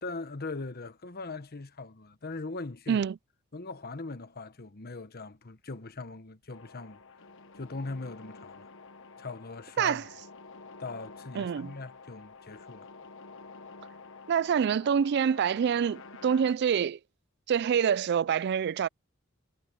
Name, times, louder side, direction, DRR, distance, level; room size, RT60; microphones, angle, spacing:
voice 1, 0.0-3.0 3.5-7.0 7.5-8.7 9.2-10.1 10.8-12.9, left 3 dB, 45° left, 1.2 m, -40 dB
sound 1, 6.5-16.5, left 4 dB, 65° left, 1.3 m, -50 dB
voice 2, 11.4-11.7 14.3-17.0 17.5-18.9, right 7 dB, 50° right, 0.3 m, -26 dB
head